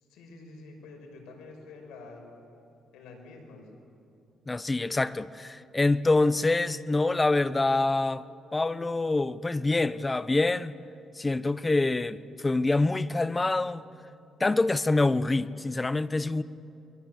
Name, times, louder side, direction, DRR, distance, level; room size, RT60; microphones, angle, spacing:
voice 1, 0.1-2.2 2.9-3.7, left 3 dB, 90° left, 5.7 m, -47 dB
voice 2, 4.5-8.2 8.5-10.7 11.2-13.8 14.4-16.4, left 2 dB, 20° left, 0.8 m, -26 dB
28.0 x 22.5 x 8.2 m
cardioid pair, 90°, 0 cm